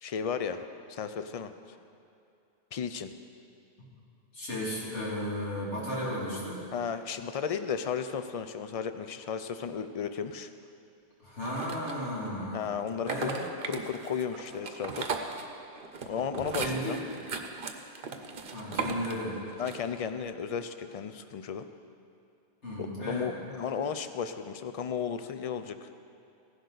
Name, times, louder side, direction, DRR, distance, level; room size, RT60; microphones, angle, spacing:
voice 1, 0.0-0.6 0.9-1.5 2.7-3.1 6.7-10.5 12.5-13.3 13.7-15.1 16.1-17.0 19.6-21.7 22.8-25.9, left 7 dB, 50° left, 10 dB, 0.4 m, -34 dB
voice 2, 4.3-6.6 11.2-12.6 13.0-13.4 16.5-17.3 18.5-19.4 22.6-23.3, equal, 90° left, -5 dB, 2.9 m, -34 dB
sound 1, 11.4-12.3 12.9-20.0, right 4 dB, 55° right, 0.9 m, -37 dB
15.5 x 11.0 x 4.0 m, 2.6 s
omnidirectional pair, 1.2 m